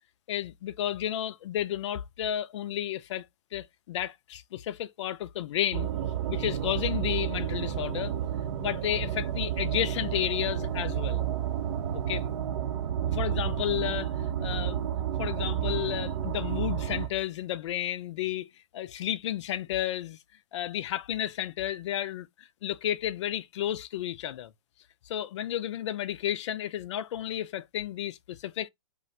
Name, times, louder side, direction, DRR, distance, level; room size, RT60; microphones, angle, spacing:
voice 1, 0.3-3.3 3.5-5.9 6.3-8.2 8.6-11.3 12.1-12.2 13.1-14.1 14.4-14.9 15.2-20.2 20.5-24.5 25.1-28.7, left 11 dB, 55° left, 0.4 m, -32 dB
sound 1, 5.7-17.1, right 10 dB, 50° right, 0.7 m, -31 dB
2.5 x 2.2 x 3.8 m
hypercardioid pair, 135°, 18 cm